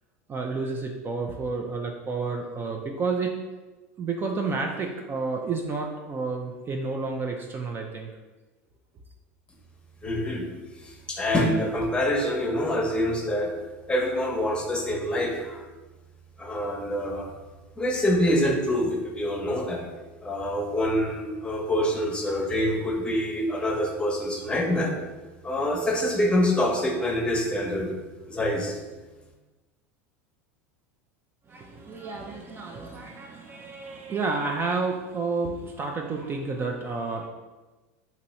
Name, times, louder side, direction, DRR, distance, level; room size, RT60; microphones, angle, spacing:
voice 1, 0.3-3.3 4.0-8.1 31.5-37.3, right 4 dB, 30° right, 2 dB, 0.4 m, -30 dB
voice 2, 10.0-10.5 10.8-13.5 13.9-15.6 16.4-17.3 17.8-19.8 20.2-24.9 25.4-27.9 28.3-28.8, left 1 dB, 15° left, 0 dB, 0.8 m, -26 dB
2.9 x 2.7 x 4.2 m, 1.2 s
hypercardioid pair, 90°, 8 cm